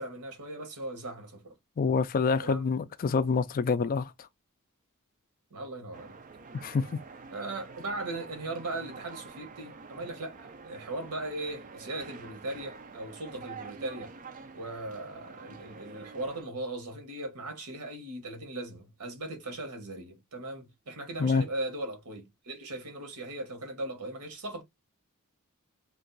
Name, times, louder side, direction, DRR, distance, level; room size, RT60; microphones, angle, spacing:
voice 1, 0.0-1.5 2.4-2.7 5.5-6.2 7.3-14.1 14.5-24.6, right 2 dB, 85° right, 1.1 m, -38 dB
voice 2, 1.8-4.1 6.6-7.0 21.2-21.4, left 5 dB, 40° left, 0.3 m, -26 dB
sound 1, 5.9-16.4, right 4 dB, 35° right, 0.4 m, -47 dB
2.5 x 2.3 x 3.8 m
head